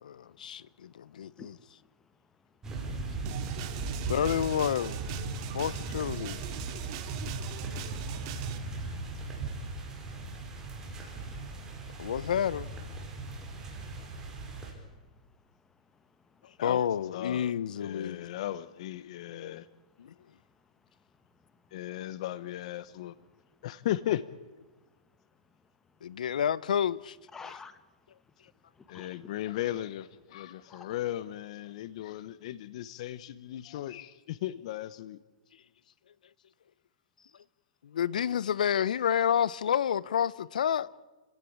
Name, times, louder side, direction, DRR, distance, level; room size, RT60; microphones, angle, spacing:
voice 1, 0.0-1.5 4.1-5.0 5.5-6.4 12.0-12.7 16.6-18.3 20.0-20.1 26.0-27.2 37.8-41.0, left 9 dB, 80° left, 1.0 m, -29 dB
voice 2, 1.4-1.9 2.9-4.1 5.4-5.5 6.6-6.9 7.3-8.0 10.8-10.9 11.9-12.1 13.1-13.9 14.3-16.6 18.2-18.3 20.1-20.2 21.4-21.8 23.3-23.4 27.3-27.9 28.7-29.3 30.7-30.9 37.2-37.4, left 5 dB, 10° left, 1.4 m, -55 dB
sound 1, 2.6-14.7, right 3 dB, 15° right, 5.4 m, -38 dB
sound 2, 3.3-8.6, right 10 dB, 40° right, 2.6 m, -41 dB
voice 3, 17.1-17.5 17.8-19.7 21.7-23.1 23.6-24.2 28.9-35.2, left 13 dB, 50° left, 1.0 m, -36 dB
29.5 x 17.0 x 8.6 m
hypercardioid pair, 150°, 4 cm